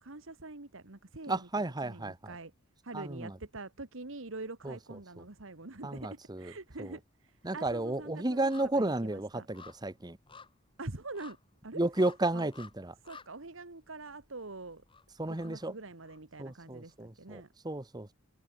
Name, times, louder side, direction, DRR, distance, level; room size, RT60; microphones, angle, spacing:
voice 1, 0.0-2.5 2.8-8.5 8.8-9.5 10.8-11.4 11.6-11.8 12.3-12.5 13.1-14.8 15.3-17.5, right 2 dB, 65° right, 1.6 m, -45 dB
voice 2, 1.3-2.4 2.9-3.4 4.6-5.2 5.8-6.5 6.8-7.0 7.4-10.2 11.7-13.0 15.2-15.7 16.4-18.1, right 2 dB, 20° right, 1.0 m, -33 dB
sound 1, 5.6-6.3 6.6-16.6 16.9-17.0, left 5 dB, 25° left, 2.5 m, -57 dB
open air
head